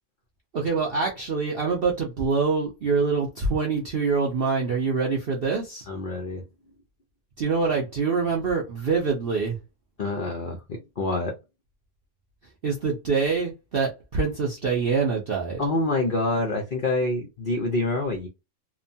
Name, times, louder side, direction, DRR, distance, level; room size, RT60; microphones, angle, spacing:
voice 1, 0.5-5.9 7.4-9.6 12.6-15.6, right 4 dB, 70° right, 0.5 m, -25 dB
voice 2, 5.9-6.5 10.0-11.4 15.6-18.3, left 2 dB, 85° left, 0.4 m, -26 dB
2.9 x 2.2 x 2.6 m
omnidirectional pair, 1.7 m